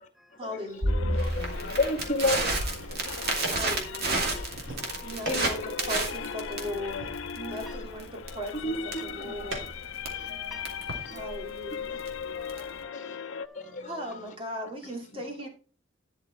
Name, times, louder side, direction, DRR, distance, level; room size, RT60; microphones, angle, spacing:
voice 1, 0.4-1.4 3.5-4.4 5.0-9.7 11.1-12.0 13.9-15.5, left 1 dB, 30° right, 2.5 m, -38 dB
Crackle, 0.8-12.8, right 2 dB, 50° right, 2.5 m, -32 dB
sound 1, 0.9-13.5, left 7 dB, 80° left, 0.6 m, -39 dB
voice 2, 1.1-3.7 4.3-4.5 4.8-5.7 6.2-6.3 6.6-6.8 8.6-9.5 10.1-10.3 11.1-11.2 11.7-12.3 12.9-13.2 13.5-14.2 15.1-15.5, left 2 dB, 40° left, 1.9 m, -34 dB
sound 2, 2.6-11.1, right 2 dB, 75° right, 3.3 m, -44 dB
voice 3, 7.4-7.7 10.1-11.2 12.3-13.8, right 1 dB, ahead, 0.5 m, -52 dB
11.5 x 6.1 x 4.3 m
head